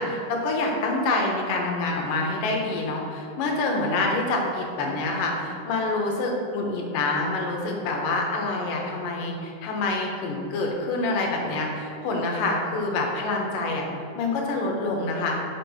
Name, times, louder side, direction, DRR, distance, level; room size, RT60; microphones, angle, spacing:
voice 1, 0.0-13.9 14.2-15.4, left 2 dB, 80° left, 0 dB, 2.6 m, -26 dB
7.1 x 5.3 x 4.5 m, 2.6 s
omnidirectional pair, 3.8 m